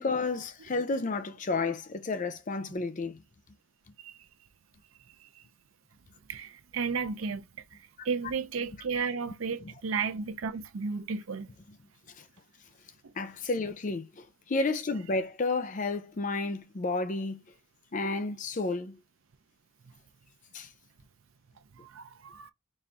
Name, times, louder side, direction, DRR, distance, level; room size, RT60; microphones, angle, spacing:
voice 1, 0.0-3.2 12.2-12.3 13.2-17.4 17.9-19.0 20.5-20.7, left 3 dB, 40° left, 0.5 m, -31 dB
voice 2, 6.3-7.8 8.0-11.5 21.7-22.5, right 5 dB, 90° right, 0.6 m, -33 dB
4.2 x 2.5 x 3.4 m
head